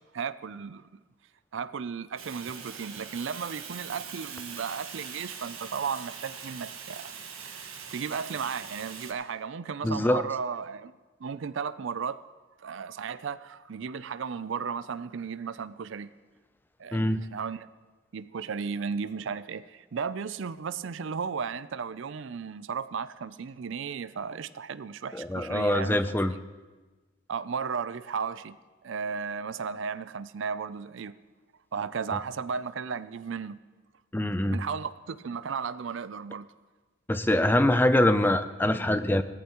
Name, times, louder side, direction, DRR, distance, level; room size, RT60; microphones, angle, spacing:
voice 1, 0.1-0.9 1.5-7.1 7.5-10.9 11.2-12.2 12.6-16.1 16.8-17.7 18.1-26.4 27.3-28.6 28.8-31.1 31.7-33.6 34.5-36.5, right 6 dB, 60° right, 0.4 m, -35 dB
Fire, 2.2-9.1, right 6 dB, 90° right, 1.6 m, -42 dB
voice 2, 9.8-10.2 16.9-17.2 25.1-26.3 34.1-34.6 37.1-39.2, left 1 dB, 10° left, 0.4 m, -24 dB
17.5 x 14.0 x 3.0 m
head